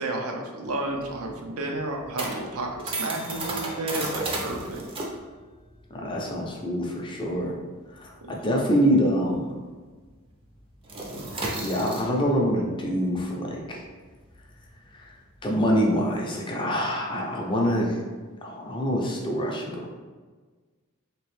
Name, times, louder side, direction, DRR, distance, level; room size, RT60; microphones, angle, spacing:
voice 1, 0.0-4.8 8.2-8.4, right 2 dB, 85° right, 2 dB, 0.6 m, -32 dB
sound 1, 0.6-9.6 9.9-10.1 10.4-16.2, right 2 dB, 25° right, 0.5 m, -35 dB
voice 2, 5.9-7.5 7.9-9.5 11.6-13.8 14.9-15.1 15.4-18.0 18.4-19.9, equal, 20° left, -1 dB, 0.5 m, -25 dB
3.4 x 3.0 x 3.1 m, 1.4 s
head